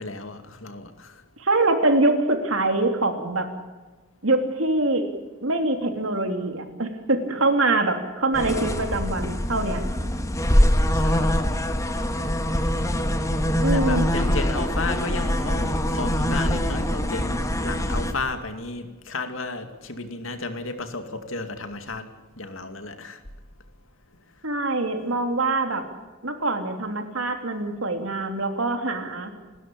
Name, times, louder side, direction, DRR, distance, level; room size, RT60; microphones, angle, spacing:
voice 1, 0.0-1.2 10.9-11.6 13.7-22.1 22.4-23.2, left 3 dB, 70° left, 7 dB, 2.4 m, -33 dB
voice 2, 1.4-3.5 4.2-5.0 5.4-9.8 13.6-14.1 24.4-25.8 26.2-29.3, right 2 dB, 70° right, 6 dB, 3.3 m, -24 dB
sound 1, 8.3-18.1, equal, 15° left, 1.7 m, -23 dB
28.5 x 13.0 x 8.8 m, 1.3 s
head